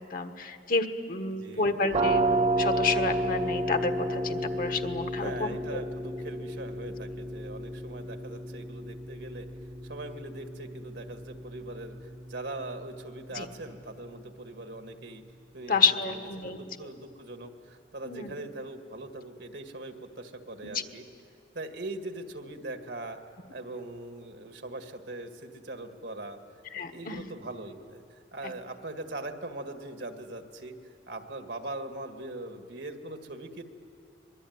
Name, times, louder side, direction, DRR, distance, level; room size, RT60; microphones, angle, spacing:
voice 1, 0.0-5.8 13.3-13.5 15.7-16.9 18.0-18.3 20.7-20.8 26.7-27.2 28.4-28.5, left 4 dB, 50° left, 8 dB, 1.4 m, -30 dB
voice 2, 1.3-1.8 5.2-9.5 9.8-15.2 15.5-15.8 16.4-21.0 21.5-23.2 23.5-26.4 26.7-30.7 31.1-33.6, right 2 dB, 70° right, 6 dB, 1.9 m, -41 dB
sound 1, 1.9-13.4, right 1 dB, 35° right, 0.8 m, -32 dB
25.0 x 21.5 x 9.5 m, 2.4 s
head